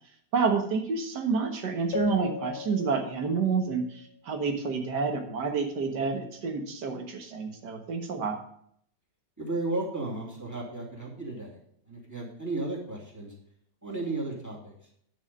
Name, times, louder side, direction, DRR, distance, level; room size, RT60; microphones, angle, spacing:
voice 1, 0.3-8.4, right 5 dB, 85° right, 5 dB, 2.0 m, -29 dB
Keyboard (musical), 1.9-4.4, left 7 dB, 70° left, 1.3 m, -38 dB
voice 2, 9.4-11.6 11.9-13.3 13.8-14.7, right 2 dB, 10° right, -3 dB, 2.5 m, -34 dB
9.3 x 6.5 x 5.4 m, 0.68 s
omnidirectional pair, 1.8 m